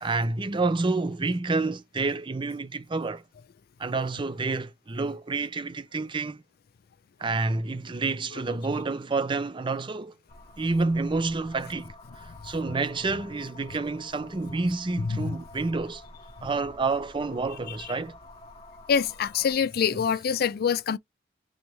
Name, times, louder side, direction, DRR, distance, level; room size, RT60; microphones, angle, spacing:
voice 1, 0.0-3.2 3.8-6.4 7.2-10.1 10.6-16.0 16.4-18.2 19.9-20.0, right 3 dB, 25° right, 0.5 m, -29 dB
sound 1, 10.3-19.5, left 2 dB, 30° left, 0.9 m, -49 dB
voice 2, 18.9-21.0, left 7 dB, 55° left, 0.4 m, -25 dB
3.9 x 3.3 x 3.1 m
head